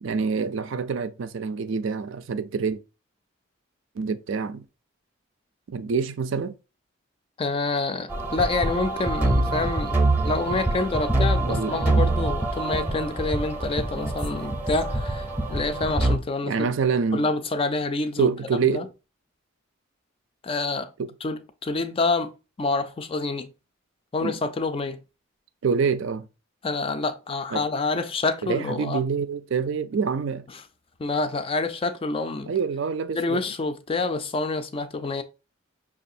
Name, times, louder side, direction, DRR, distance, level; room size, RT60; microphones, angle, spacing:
voice 1, 0.0-2.8 4.0-4.6 5.7-6.6 10.5-10.6 11.5-11.9 16.5-17.3 18.2-18.9 21.0-21.1 24.2-24.4 25.6-26.3 27.5-27.6 28.4-30.5 32.5-33.4, right 5 dB, 65° right, 0.4 m, -26 dB
voice 2, 7.4-10.0 10.2-16.6 17.1-18.3 18.7-18.9 20.4-20.9 21.2-23.5 24.1-25.0 26.6-29.0 31.0-32.5 33.1-35.2, left 3 dB, 25° left, 0.3 m, -27 dB
sound 1, 8.1-16.2, right 2 dB, 10° right, 0.7 m, -25 dB
6.0 x 2.4 x 2.6 m
head